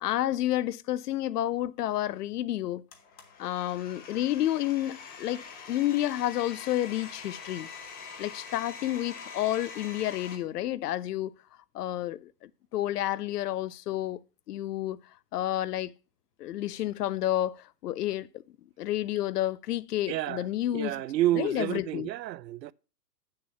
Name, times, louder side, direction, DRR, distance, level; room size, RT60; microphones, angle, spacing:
voice 1, 0.0-2.8 3.4-7.7 8.2-11.3 11.7-14.2 14.5-15.0 15.3-15.9 16.4-18.3 18.8-21.0 21.3-22.1, left 13 dB, 70° left, 0.7 m, -30 dB
Domestic sounds home sounds, 2.9-10.4, left 5 dB, 20° left, 1.0 m, -44 dB
voice 2, 20.1-20.4 20.7-22.7, right 14 dB, 85° right, 0.6 m, -29 dB
7.3 x 6.7 x 5.7 m
hypercardioid pair, 145°, 49 cm